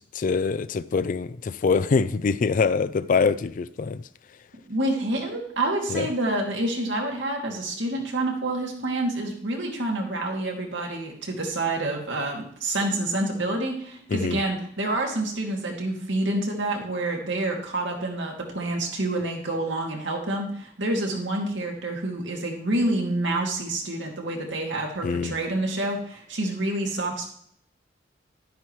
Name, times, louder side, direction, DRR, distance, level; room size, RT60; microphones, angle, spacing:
voice 1, 0.0-4.0 5.9-6.1 14.1-14.4 25.0-25.3, left 5 dB, 45° left, 0.4 m, -24 dB
voice 2, 4.7-27.3, right 2 dB, 70° right, 2.3 m, -28 dB
11.5 x 10.0 x 3.2 m
head